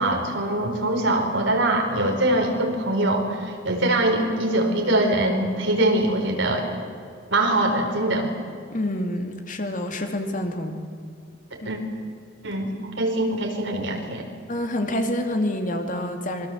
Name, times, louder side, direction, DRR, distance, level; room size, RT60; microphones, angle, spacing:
voice 1, 0.0-6.7 7.3-8.3 11.6-11.8 12.4-14.3, right 1 dB, 65° right, 2 dB, 4.7 m, -23 dB
voice 2, 8.7-10.8 11.6-11.7 14.5-16.5, left 1 dB, 40° left, 5 dB, 2.4 m, -27 dB
26.5 x 22.0 x 7.9 m, 2.2 s
head